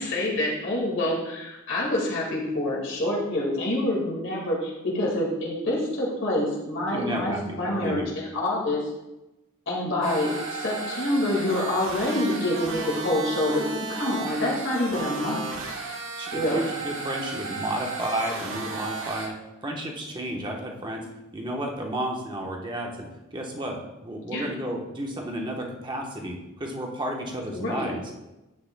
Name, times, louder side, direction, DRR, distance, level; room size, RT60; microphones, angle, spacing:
voice 1, 0.0-8.9 9.7-13.6 13.9-15.4 16.3-16.7 24.3-24.5 27.5-27.9, left 1 dB, 60° left, -4 dB, 2.0 m, -27 dB
voice 2, 6.9-8.1 16.2-21.1 21.3-28.0, right 1 dB, 20° right, 0 dB, 1.1 m, -32 dB
sound 1, 10.0-19.3, right 3 dB, 65° right, 1.4 m, -34 dB
10.0 x 8.9 x 2.3 m, 1.0 s
head